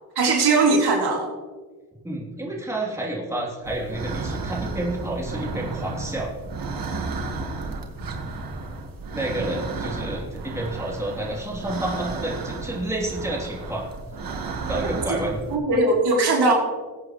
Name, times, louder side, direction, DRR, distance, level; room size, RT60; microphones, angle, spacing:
voice 1, 0.1-1.3 15.5-16.5, right 3 dB, 85° right, -2 dB, 3.3 m, -19 dB
voice 2, 2.0-6.3 9.1-13.8 14.7-15.5, right 1 dB, 5° right, -3 dB, 3.1 m, -29 dB
sound 1, 3.6-15.6, right 3 dB, 60° right, 1.6 m, -33 dB
21.0 x 8.3 x 3.1 m, 1.4 s
cardioid pair, 100°, 39 cm